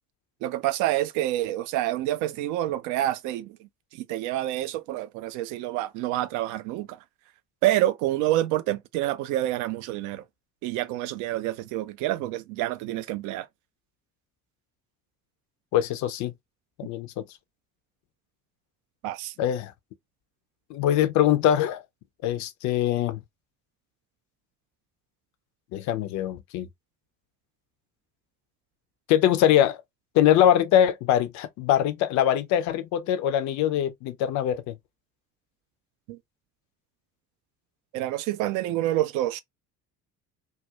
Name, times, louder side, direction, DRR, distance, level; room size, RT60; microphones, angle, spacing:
voice 1, 0.4-7.0 7.6-10.2 10.6-13.5 19.0-19.3 36.1-36.2 37.9-39.4, right 14 dB, 45° right, 0.4 m, -28 dB
voice 2, 15.7-16.3 16.8-17.2 19.4-19.7 20.7-21.8 22.2-23.2 25.7-26.7 29.1-29.8 30.1-34.8, left 11 dB, 40° left, 0.5 m, -23 dB
2.4 x 2.1 x 2.7 m
figure-of-eight pair, 55°, 45 cm